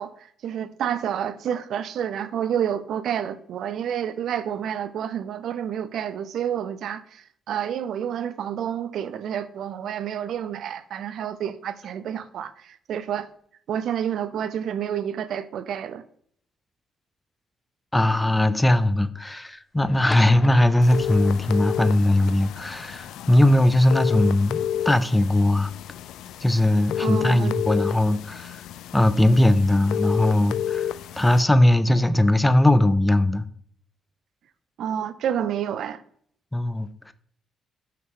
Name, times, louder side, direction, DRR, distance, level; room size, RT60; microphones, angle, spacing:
voice 1, 0.0-13.3 13.7-16.0 27.0-27.5 34.8-36.0, right 9 dB, 70° right, 0.5 m, -29 dB
voice 2, 17.9-25.7 26.4-28.6 28.9-30.9 31.2-33.5 36.5-37.1, left 1 dB, 10° left, 0.5 m, -20 dB
sound 1, 19.8-26.6, left 2 dB, 25° left, 1.0 m, -42 dB
sound 2, 20.8-31.4, left 10 dB, 85° left, 0.3 m, -31 dB
6.1 x 5.8 x 3.7 m
cardioid pair, 90°, 0 cm